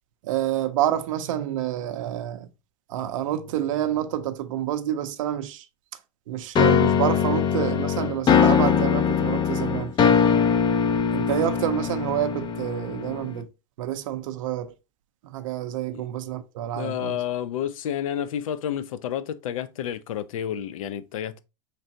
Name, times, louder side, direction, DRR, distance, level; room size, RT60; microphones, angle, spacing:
voice 1, 0.2-2.5 2.9-5.7 6.3-10.2 11.1-13.5 13.8-14.7 15.2-17.2, right 11 dB, 80° right, 0.5 m, -28 dB
sound 1, 6.6-13.4, left 7 dB, 25° left, 0.4 m, -21 dB
voice 2, 16.7-21.4, left 10 dB, 90° left, 0.4 m, -30 dB
3.8 x 3.3 x 2.6 m
supercardioid pair, 115°, 17 cm